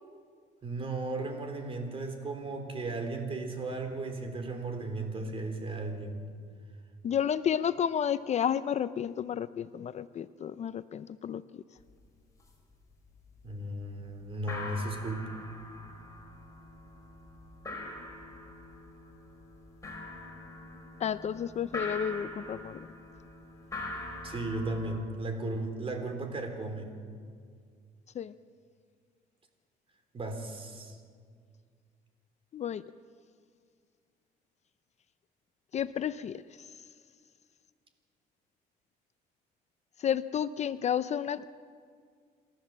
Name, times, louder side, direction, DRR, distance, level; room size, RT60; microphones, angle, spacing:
voice 1, 0.6-6.2 13.4-15.4 24.2-26.9 30.1-31.0, right 2 dB, 35° right, 6 dB, 3.6 m, -35 dB
voice 2, 7.0-11.4 21.0-22.8 28.2-28.3 32.5-32.8 35.7-36.4 40.0-41.5, left 9 dB, 40° left, 14 dB, 0.5 m, -31 dB
sound 1, 11.8-11.9 12.2-12.7 13.0-13.6 14.0-14.1 14.3-25.0, left 2 dB, 20° left, 5.5 m, -43 dB
28.0 x 13.5 x 7.5 m, 2.1 s
cardioid pair, 110°, 17 cm